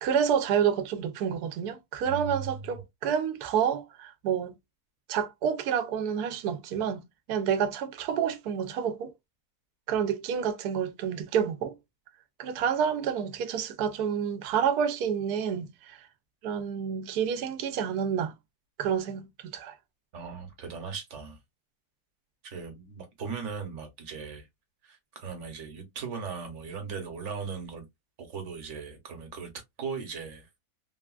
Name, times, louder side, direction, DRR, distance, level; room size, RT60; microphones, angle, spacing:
voice 1, 0.0-4.5 5.1-7.0 7.3-9.1 9.9-11.7 12.4-16.1 16.4-18.3 18.8-19.8, right 8 dB, 85° right, 1.1 m, -29 dB
voice 2, 2.1-2.8 20.1-21.4 22.4-24.5 24.8-27.8 28.2-29.5 29.8-30.5, right 5 dB, 55° right, 1.1 m, -38 dB
3.3 x 2.3 x 2.3 m
omnidirectional pair, 1.6 m